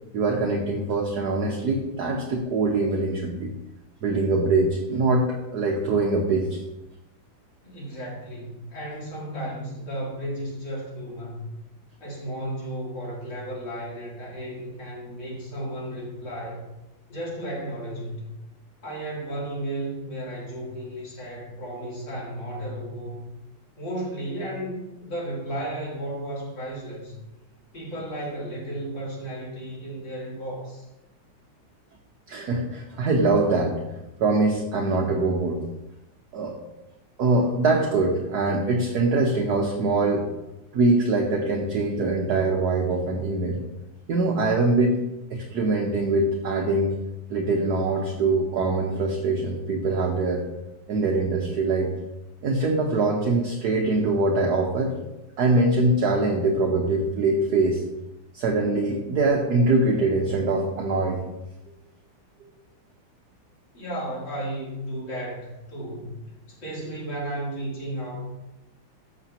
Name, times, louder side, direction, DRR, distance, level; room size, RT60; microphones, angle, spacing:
voice 1, 0.1-3.5 4.0-5.3 5.5-6.6 32.3-33.7 34.2-35.6 36.3-36.5 37.2-40.2 40.7-43.6 44.1-45.0 45.3-46.9 47.3-50.4 50.9-51.9 52.4-54.9 55.4-57.8 58.3-61.2, right 2 dB, 55° right, 0 dB, 1.4 m, -23 dB
voice 2, 7.6-11.4 12.0-16.7 17.1-18.3 18.8-23.3 23.8-27.2 27.7-30.9 63.7-66.1 66.5-68.3, right 1 dB, 60° left, -6 dB, 4.0 m, -34 dB
13.0 x 7.0 x 3.0 m, 0.95 s
omnidirectional pair, 2.3 m